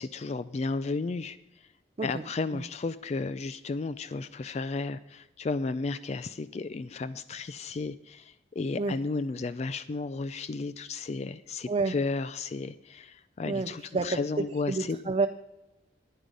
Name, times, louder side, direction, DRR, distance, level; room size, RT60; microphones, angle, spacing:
voice 1, 0.0-1.7 2.0-15.0, left 3 dB, 35° left, 14 dB, 0.3 m, -33 dB
voice 2, 13.4-15.3, right 3 dB, 35° right, 9 dB, 0.4 m, -29 dB
10.0 x 9.8 x 5.2 m, 0.96 s
head